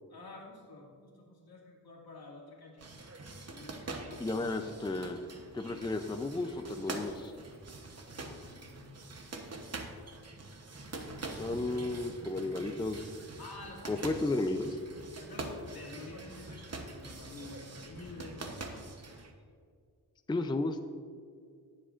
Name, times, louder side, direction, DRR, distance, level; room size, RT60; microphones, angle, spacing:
voice 1, 0.1-2.8 3.5-4.5 8.1-9.0 12.4-12.7 13.4-14.3 15.2-18.5, left 2 dB, 75° left, -2 dB, 2.2 m, -49 dB
sound 1, 2.8-19.3, right 2 dB, 40° right, 1.0 m, -44 dB
voice 2, 4.2-5.2 5.5-7.3 11.4-13.1 13.9-14.8 20.3-20.9, left 2 dB, 10° left, 7 dB, 0.5 m, -33 dB
18.0 x 7.5 x 2.5 m, 2.2 s
wide cardioid pair, 115°, 37 cm